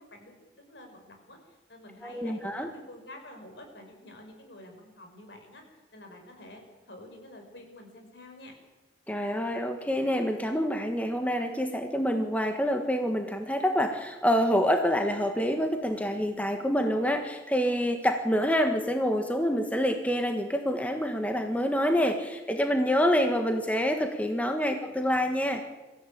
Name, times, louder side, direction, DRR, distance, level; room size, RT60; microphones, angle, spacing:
voice 1, 0.0-5.6 5.9-8.5 24.6-24.9, left 1 dB, 70° left, 3 dB, 5.6 m, -49 dB
voice 2, 2.0-2.7 9.1-25.6, equal, 10° left, 5 dB, 1.5 m, -27 dB
24.0 x 15.0 x 8.7 m, 1.2 s
head